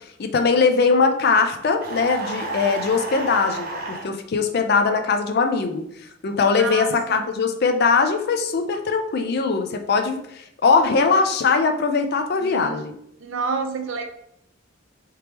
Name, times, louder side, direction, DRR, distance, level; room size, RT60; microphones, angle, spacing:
voice 1, 0.0-5.8 6.2-12.9, left 4 dB, 55° left, 6 dB, 0.4 m, -21 dB
sound 1, 1.8-4.1, right 3 dB, 50° right, 0.9 m, -31 dB
voice 2, 6.6-7.3 12.4-12.8 13.2-14.0, right 4 dB, 80° right, 5 dB, 0.5 m, -29 dB
3.4 x 2.9 x 3.3 m, 0.74 s
head